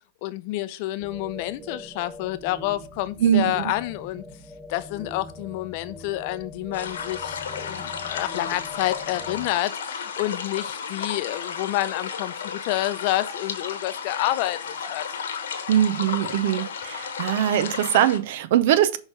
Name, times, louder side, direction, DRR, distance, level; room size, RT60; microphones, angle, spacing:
voice 1, 0.2-4.2 4.7-15.1, left 16 dB, 50° left, 0.5 m, -29 dB
sound 1, 1.0-9.5, left 2 dB, 5° right, 0.8 m, -42 dB
voice 2, 3.2-3.7 15.7-19.0, right 11 dB, 60° right, 0.6 m, -22 dB
sound 2, 6.7-18.2, left 6 dB, 75° left, 1.1 m, -33 dB
6.3 x 3.2 x 4.8 m
hypercardioid pair, 115°, 0 cm